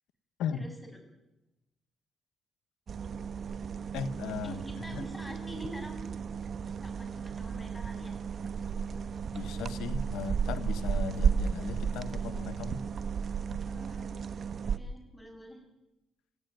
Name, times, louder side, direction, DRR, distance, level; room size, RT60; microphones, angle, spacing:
voice 1, 0.5-0.9 4.4-6.0 6.8-8.2 13.7-14.1 14.6-15.6, equal, 10° left, 4 dB, 7.9 m, -45 dB
sound 1, 2.9-14.8, right 6 dB, 50° right, 1.2 m, -34 dB
voice 2, 3.9-4.6 4.9-5.1 9.3-12.9, left 6 dB, 90° left, 11 dB, 1.4 m, -37 dB
27.5 x 16.0 x 9.4 m, 0.95 s
cardioid pair, 90°, 0 cm